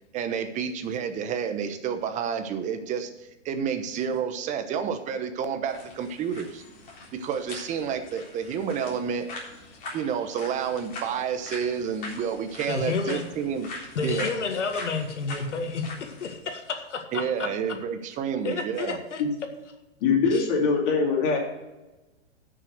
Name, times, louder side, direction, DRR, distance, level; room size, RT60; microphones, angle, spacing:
voice 1, 0.1-6.6 7.1-9.3 9.9-13.7 14.0-14.3 17.1-19.0, right 7 dB, 20° right, 8 dB, 0.9 m, -30 dB
sound 1, 5.7-16.4, left 2 dB, 25° left, 3.7 m, -42 dB
voice 2, 12.7-13.2 14.0-17.5 18.4-19.2 20.3-20.5, left 4 dB, 90° left, 5 dB, 1.9 m, -30 dB
voice 3, 20.0-21.4, left 5 dB, 50° left, 0 dB, 3.0 m, -22 dB
10.5 x 6.4 x 6.5 m, 1.1 s
hypercardioid pair, 140°, 35 cm